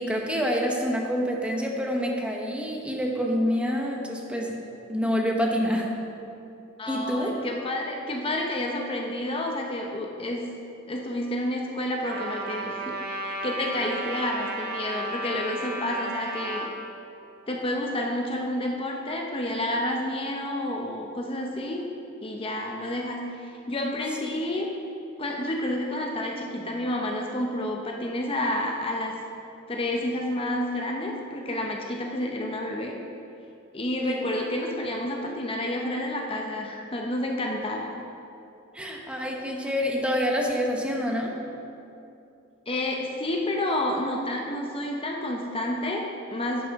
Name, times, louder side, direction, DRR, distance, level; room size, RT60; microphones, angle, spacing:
voice 1, 0.0-4.6 4.9-5.9 6.9-7.4 24.2-24.3 34.0-34.3 38.7-41.3, equal, 5° right, 0 dB, 1.0 m, -27 dB
voice 2, 6.8-10.4 10.9-16.7 17.5-21.8 22.2-24.7 25.2-29.1 29.7-33.0 33.7-38.0 42.7-46.7, left 1 dB, 30° left, 0 dB, 0.7 m, -30 dB
Trumpet, 12.0-16.7, right 2 dB, 50° right, 1.1 m, -33 dB
11.0 x 9.6 x 3.6 m, 2.7 s
head